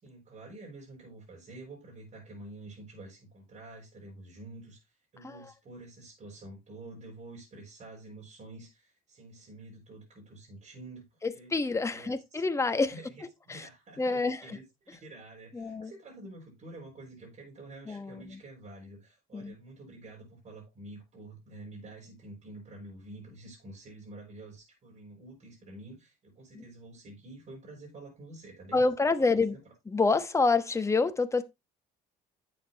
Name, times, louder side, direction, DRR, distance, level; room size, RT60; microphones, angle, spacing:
voice 1, 0.0-11.5 11.9-12.4 12.9-29.7, right 2 dB, 40° right, 5.4 m, -48 dB
voice 2, 11.2-12.9 13.5-13.7 14.0-14.6 15.5-15.9 17.9-18.4 19.3-19.5 26.5-26.6 28.7-29.6 29.9-31.4, left 3 dB, 15° left, 1.1 m, -27 dB
10.5 x 7.7 x 2.9 m
cardioid pair, 110°, 17 cm